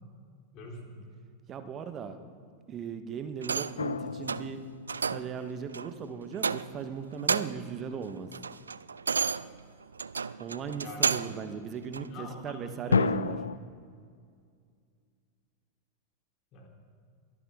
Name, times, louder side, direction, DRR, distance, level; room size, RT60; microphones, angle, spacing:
voice 1, 0.5-0.9 10.7-11.0 12.1-12.7 16.5-16.7, left 2 dB, 35° left, 0 dB, 3.5 m, -44 dB
voice 2, 1.5-2.2 2.7-4.6 5.1-8.3 10.4-13.4, right 6 dB, 30° right, 9 dB, 1.3 m, -38 dB
sound 1, 3.4-3.9 4.3-4.5 4.9-5.3 5.7-5.9 6.4-6.9 7.1-7.7 8.1-11.4 11.9-12.1, right 5 dB, 75° right, 0.3 m, -31 dB
sound 2, 3.8-5.9 12.9-13.6, left 5 dB, 75° left, 0.4 m, -30 dB
22.0 x 13.5 x 3.7 m, 2.2 s
figure-of-eight pair, 90°, 0 cm